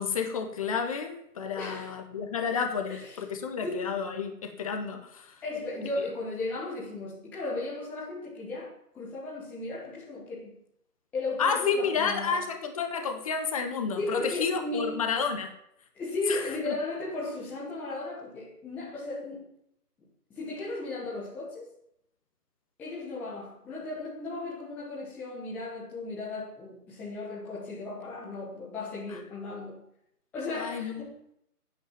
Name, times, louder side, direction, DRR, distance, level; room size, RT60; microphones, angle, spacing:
voice 1, 0.0-5.4 6.0-6.1 11.4-15.5 16.3-16.7 29.1-29.2 30.5-31.1, left 6 dB, 20° left, 5 dB, 1.5 m, -31 dB
voice 2, 1.6-1.9 2.9-3.1 3.6-4.0 5.4-10.5 11.1-12.4 14.0-15.0 15.9-19.5 20.3-21.7 22.8-29.8 30.3-31.1, left 2 dB, 5° left, -7 dB, 1.2 m, -35 dB
14.5 x 9.2 x 7.3 m, 0.75 s
figure-of-eight pair, 150°, 48 cm